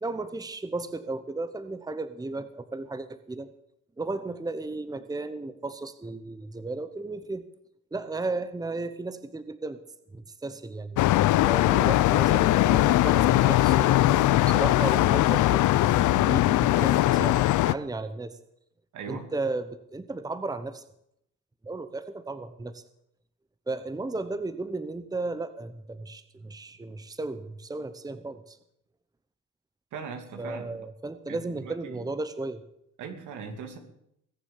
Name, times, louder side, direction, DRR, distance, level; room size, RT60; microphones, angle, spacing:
voice 1, 0.0-3.5 4.0-7.4 7.9-9.8 10.1-11.0 11.4-18.3 19.1-20.8 21.6-22.8 23.7-28.6 30.4-32.6, right 3 dB, 10° right, 12 dB, 1.0 m, -34 dB
sound 1, 11.0-17.7, left 16 dB, 80° left, 0.6 m, -21 dB
voice 2, 18.9-19.3 29.9-30.8 31.3-32.1 33.0-33.8, right 5 dB, 80° right, 5 dB, 2.6 m, -39 dB
21.5 x 7.3 x 7.3 m, 0.77 s
cardioid pair, 90°, 30 cm